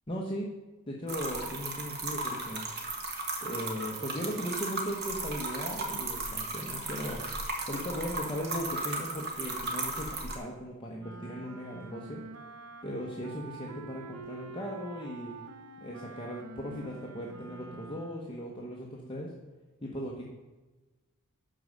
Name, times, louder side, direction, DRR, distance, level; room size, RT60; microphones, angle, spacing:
voice 1, 0.1-0.5 0.9-2.6 3.4-12.2 12.8-15.3 15.8-19.3 19.8-20.2, equal, 20° left, -3 dB, 1.1 m, -38 dB
sound 1, 1.1-10.4, right 2 dB, 45° right, 1.7 m, -36 dB
Wind instrument woodwind instrument, 11.0-18.4, right 3 dB, 85° right, 1.0 m, -47 dB
12.5 x 4.8 x 6.5 m, 1.2 s
head